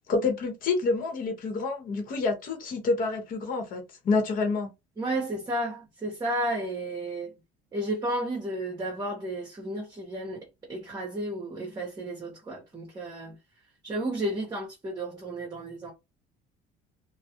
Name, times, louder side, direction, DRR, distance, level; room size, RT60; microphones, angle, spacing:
voice 1, 0.1-4.7, left 3 dB, 50° left, 0.9 m, -28 dB
voice 2, 5.0-7.3 7.7-13.4 13.8-15.9, right 1 dB, 20° right, 0.9 m, -32 dB
2.2 x 2.0 x 2.8 m
cardioid pair, 110°, 19 cm